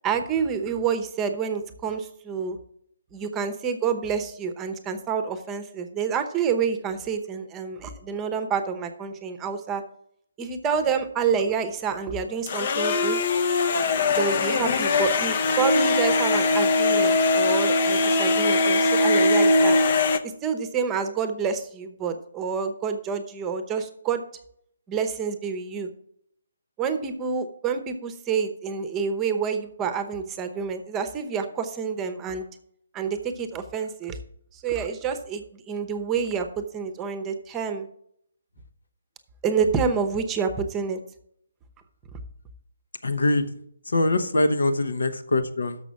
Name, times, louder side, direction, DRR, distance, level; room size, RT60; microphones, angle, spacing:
voice 1, 0.0-2.6 3.1-9.8 10.4-13.2 14.2-19.8 20.4-24.2 24.9-25.9 26.8-32.5 32.9-34.2 34.5-37.9 39.4-41.0, right 6 dB, 15° right, 8 dB, 0.9 m, -28 dB
sound 1, 12.5-20.2, left 3 dB, 45° left, 0.7 m, -21 dB
voice 2, 43.0-43.5 43.9-45.8, left 2 dB, 75° left, 10 dB, 1.0 m, -23 dB
6.7 x 6.1 x 7.0 m, 0.70 s
figure-of-eight pair, 145°, 0 cm